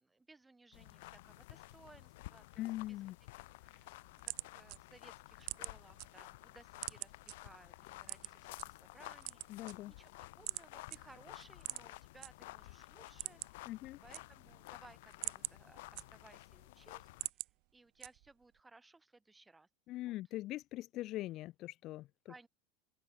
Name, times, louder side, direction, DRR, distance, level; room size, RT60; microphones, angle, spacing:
voice 1, 0.0-3.1 3.4-13.8 14.0-19.7 20.0-20.2 22.3-22.5, right 3 dB, 10° right, 5.4 m, -62 dB
sound 1, 0.7-17.3, left 20 dB, 75° left, 5.3 m, -53 dB
voice 2, 2.6-3.2 9.5-9.9 13.7-14.0 19.9-22.1, left 16 dB, 50° left, 0.4 m, -42 dB
sound 2, 3.8-6.1 6.4-7.3 8.0-8.7 9.1-10.1 10.5-10.6 10.9-11.0 11.6-12.3 12.6-12.7 13.0-13.7 13.9-14.6 15.0-16.5 16.9-17.5 18.0-18.4, right 28 dB, 60° right, 1.1 m, -43 dB
open air
supercardioid pair, 105°, 0 cm